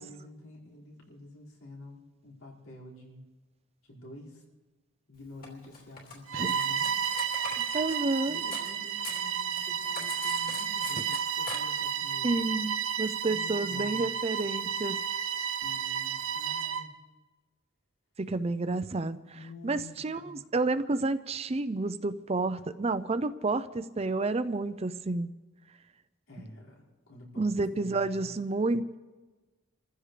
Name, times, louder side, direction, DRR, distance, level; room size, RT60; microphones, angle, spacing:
voice 1, 0.0-3.2 3.8-4.4 5.1-7.0 8.3-12.3 13.3-14.1 15.4-16.9 19.3-20.4 26.3-28.3, left 2 dB, 85° left, -4 dB, 5.2 m, -49 dB
Cutlery silverware, 5.4-8.7 9.0-11.6, left 4 dB, 45° left, 3.1 m, -43 dB
Bowed string instrument, 6.3-16.9, right 7 dB, 85° right, 0.9 m, -32 dB
voice 2, 7.7-8.4 12.2-15.0 18.2-19.4 19.6-25.3 27.4-28.9, right 3 dB, 30° right, 12 dB, 0.5 m, -30 dB
28.5 x 15.0 x 3.3 m, 1.2 s
head